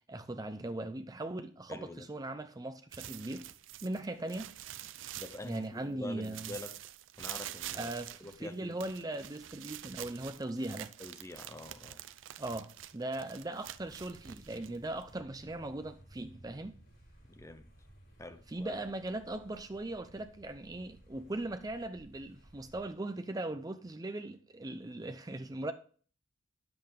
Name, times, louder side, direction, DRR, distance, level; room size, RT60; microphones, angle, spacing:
voice 1, 0.1-3.5 3.8-4.5 5.4-6.6 7.7-10.9 12.4-16.8 18.5-25.7, right 2 dB, 20° right, 0.5 m, -39 dB
voice 2, 1.7-2.1 5.2-6.8 7.2-7.9 8.2-8.8 11.0-12.0 17.3-17.7 18.2-18.7, left 2 dB, 15° left, 0.7 m, -46 dB
sound 1, 2.9-5.9 6.2-15.2, right 12 dB, 85° right, 0.5 m, -46 dB
sound 2, 13.7-22.9, right 1 dB, 80° left, 4.0 m, -58 dB
10.5 x 7.7 x 3.6 m
head